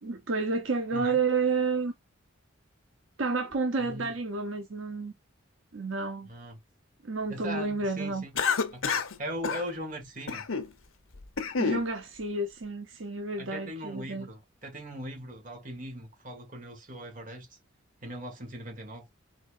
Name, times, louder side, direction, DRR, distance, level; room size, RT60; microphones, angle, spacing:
voice 1, 0.0-1.9 3.2-5.1 5.7-6.3 7.0-8.2 11.6-14.3, right 4 dB, 75° right, 1.0 m, -30 dB
voice 2, 3.8-4.1 6.3-6.6 7.3-8.3 8.7-10.5 13.4-17.5 18.0-19.1, equal, 40° right, 2.0 m, -40 dB
Cough, 8.4-9.2 9.4-9.6 10.3-10.7 11.1-11.8, left 5 dB, 80° left, 0.9 m, -28 dB
4.4 x 4.2 x 2.6 m
head